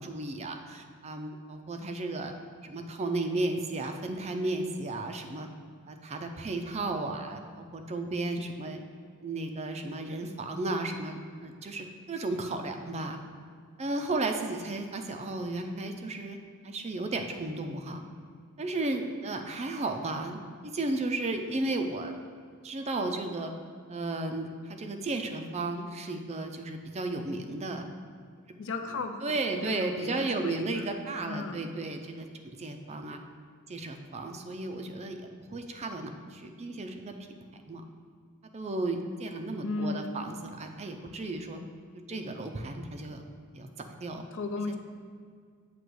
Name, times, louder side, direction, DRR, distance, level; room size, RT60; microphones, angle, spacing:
voice 1, 0.0-2.3 2.6-5.5 5.9-8.8 9.2-13.2 13.8-16.4 16.6-18.0 18.6-22.1 22.6-23.5 23.9-27.9 29.2-33.2 33.7-37.1 37.5-37.8 38.5-41.6 42.1-43.2 43.5-43.7 44.0-44.2 44.7-44.8, right 2 dB, 30° right, 5 dB, 0.4 m, -34 dB
voice 2, 28.6-30.9 31.3-31.7 39.6-40.4 44.3-44.8, left 3 dB, 60° left, 6 dB, 0.5 m, -36 dB
7.8 x 3.0 x 6.2 m, 2.2 s
head